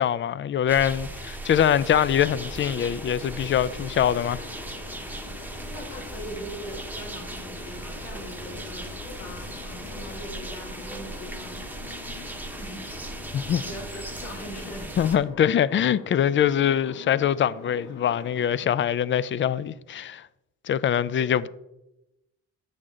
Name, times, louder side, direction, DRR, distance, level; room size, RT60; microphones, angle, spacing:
voice 1, 0.0-4.4 13.3-13.6 15.0-20.2 20.6-21.5, left 9 dB, 40° left, 0.4 m, -23 dB
sound 1, 0.7-15.2, right 1 dB, 5° right, 0.9 m, -38 dB
sound 2, 2.1-18.5, left 5 dB, 75° left, 1.6 m, -44 dB
voice 2, 5.7-11.6 12.6-13.2 13.6-15.2 18.5-18.7 21.2-21.4, equal, 60° left, 3.3 m, -41 dB
8.6 x 6.5 x 3.7 m
cardioid pair, 90°, 30 cm